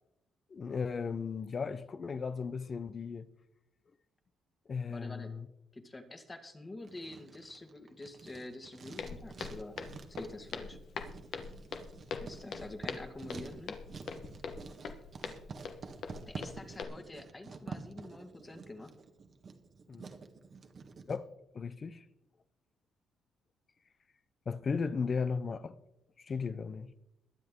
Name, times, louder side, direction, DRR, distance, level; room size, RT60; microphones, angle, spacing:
voice 1, 0.5-3.3 4.7-5.5 19.9-20.1 21.1-21.3 21.5-22.0 24.5-25.8 26.2-26.9, left 5 dB, 40° left, 0.7 m, -36 dB
voice 2, 4.9-5.3 5.7-9.8 10.1-10.8 12.2-13.8 16.3-18.9, left 2 dB, 20° left, 1.8 m, -47 dB
Writing, 6.8-21.2, right 4 dB, 45° right, 1.4 m, -48 dB
Walk footsteps, 9.0-16.8, left 5 dB, 65° left, 1.3 m, -43 dB
21.5 x 7.9 x 3.8 m
cardioid pair, 90°, 0 cm